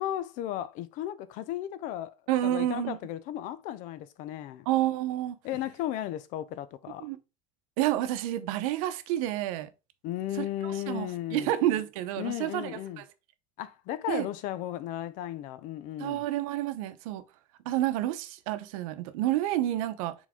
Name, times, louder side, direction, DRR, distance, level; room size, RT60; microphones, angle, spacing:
voice 1, 0.0-2.1 2.4-4.7 5.4-7.1 10.0-11.5 12.2-13.0 13.6-16.2, left 12 dB, 50° left, 0.5 m, -35 dB
voice 2, 2.3-3.0 4.7-5.4 7.0-7.2 7.8-9.7 10.4-13.0 14.1-14.3 16.0-17.2 17.6-20.2, right 13 dB, 90° right, 0.8 m, -29 dB
7.3 x 4.0 x 3.6 m
cardioid pair, 170°, 17 cm